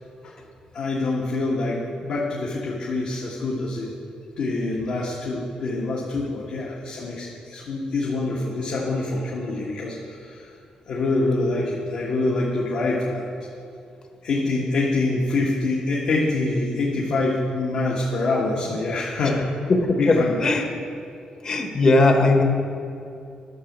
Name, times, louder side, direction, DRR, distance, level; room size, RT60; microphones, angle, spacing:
voice 1, 0.7-3.9 4.4-10.5 10.9-13.2 14.2-19.4 19.9-20.4, left 2 dB, 60° left, -4 dB, 1.5 m, -25 dB
voice 2, 19.7-20.7 21.4-22.4, left 2 dB, 35° left, 3 dB, 1.2 m, -18 dB
11.0 x 6.2 x 7.3 m, 2.5 s
wide cardioid pair, 165°, 2 cm